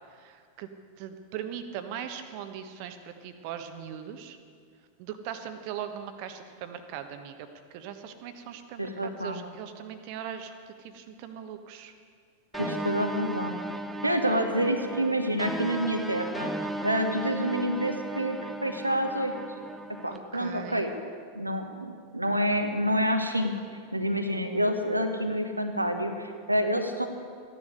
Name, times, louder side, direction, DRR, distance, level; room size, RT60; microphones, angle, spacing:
voice 1, 0.1-0.7 1.0-4.4 5.0-11.9 20.1-20.9, right 9 dB, 45° right, 8 dB, 1.2 m, -40 dB
voice 2, 8.8-9.4 12.5-13.6 14.0-16.5 16.8-19.3 20.0-20.9 21.3-23.5 23.9-27.1, equal, 85° right, 5 dB, 1.2 m, -28 dB
sound 1, 12.5-20.2, right 1 dB, 5° right, 0.8 m, -36 dB
15.0 x 11.0 x 6.6 m, 2.1 s
figure-of-eight pair, 90°, 0 cm